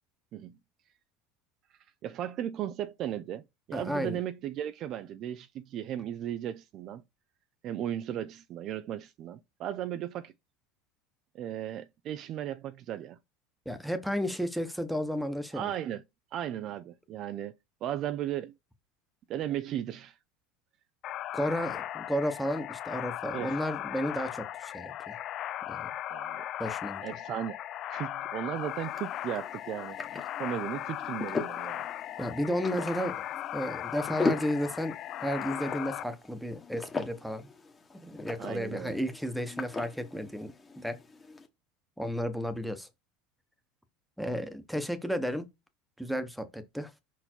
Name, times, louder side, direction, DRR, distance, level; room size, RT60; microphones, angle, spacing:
voice 1, 2.0-7.0 7.6-10.3 11.3-13.2 15.5-16.0 16.3-17.5 17.8-18.5 19.3-20.1 23.3-23.6 26.1-26.4 27.0-27.6 27.9-30.0 30.4-31.8 38.4-39.0, right 11 dB, 45° right, 0.5 m, -36 dB
voice 2, 3.7-4.2 13.6-15.7 21.3-25.2 25.7-25.9 26.6-27.0 32.2-33.2 33.5-37.5 38.0-40.5 40.8-41.0 42.0-42.9 44.2-45.4 46.0-46.9, equal, ahead, 1.1 m, -33 dB
sound 1, 21.0-36.0, left 13 dB, 45° left, 0.4 m, -38 dB
sound 2, 28.6-41.5, left 3 dB, 20° left, 1.2 m, -39 dB
5.3 x 4.6 x 4.4 m
supercardioid pair, 125°, 0 cm